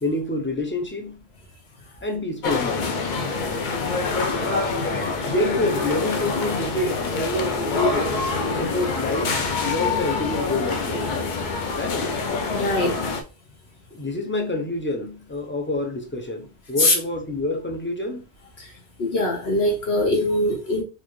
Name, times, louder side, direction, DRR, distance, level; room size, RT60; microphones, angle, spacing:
voice 1, 0.0-1.2 2.0-3.0 5.2-8.1 8.4-11.2 11.7-12.2 13.9-18.2, left 2 dB, 15° left, 0.4 m, -27 dB
sound 1, 2.4-13.2, left 3 dB, 55° left, 0.6 m, -26 dB
voice 2, 12.5-13.0 16.8-16.9 18.6-18.7 19.0-20.8, left 1 dB, 75° left, 1.4 m, -22 dB
4.1 x 2.5 x 3.0 m
omnidirectional pair, 1.1 m